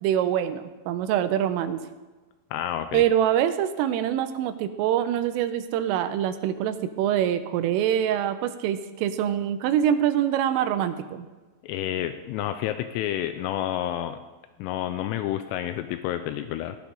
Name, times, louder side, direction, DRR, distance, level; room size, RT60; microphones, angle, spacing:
voice 1, 0.0-1.8 2.9-11.3, right 10 dB, 85° right, 9 dB, 3.4 m, -25 dB
voice 2, 2.5-3.0 11.6-14.2 14.6-16.8, left 12 dB, 85° left, 9 dB, 3.2 m, -29 dB
17.5 x 13.5 x 3.9 m, 1.2 s
omnidirectional pair, 5.8 m